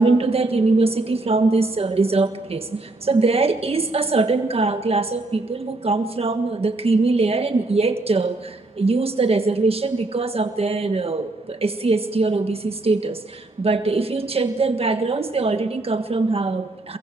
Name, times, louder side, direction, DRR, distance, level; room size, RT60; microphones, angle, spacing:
voice 1, 0.0-17.0, right 3 dB, 50° right, 7 dB, 1.5 m, -21 dB
28.0 x 23.0 x 7.7 m, 1.1 s
wide cardioid pair, 85°, 13 cm